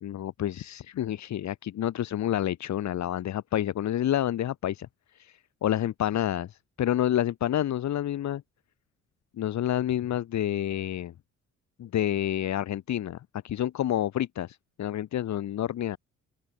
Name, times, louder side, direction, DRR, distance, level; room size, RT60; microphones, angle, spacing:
voice 1, 0.0-8.4 9.4-11.1 11.8-16.0, left 11 dB, 65° left, 1.8 m, -29 dB
open air
cardioid pair, 90°, 30 cm